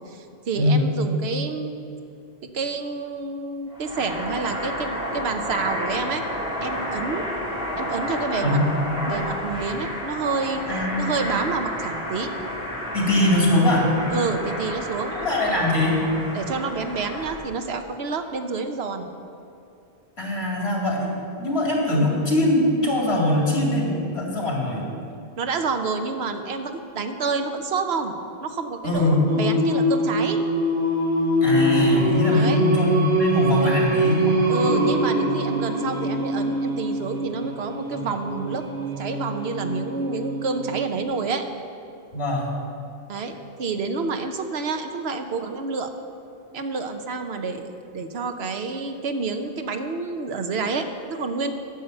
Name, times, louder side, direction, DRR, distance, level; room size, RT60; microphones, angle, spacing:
voice 1, 0.1-1.7 2.5-6.2 6.6-7.3 7.8-8.6 9.1-10.6 11.0-12.3 14.1-15.2 16.3-19.1 25.4-28.1 28.4-30.4 32.3-32.6 33.6-33.8 34.5-41.4 43.1-45.9 46.5-51.5, right 4 dB, 90° right, 6 dB, 1.1 m, -28 dB
sound 1, 3.7-17.3, equal, 5° right, 2.3 m, -31 dB
voice 2, 10.7-11.1 12.9-13.9 15.1-16.0 20.2-21.1 21.4-24.8 28.8-29.3 31.4-34.5 42.1-42.5, left 1 dB, 90° left, -2 dB, 2.5 m, -22 dB
Singing, 29.3-41.0, right 1 dB, 60° right, 1.5 m, -24 dB
10.5 x 6.6 x 7.8 m, 2.6 s
omnidirectional pair, 1.0 m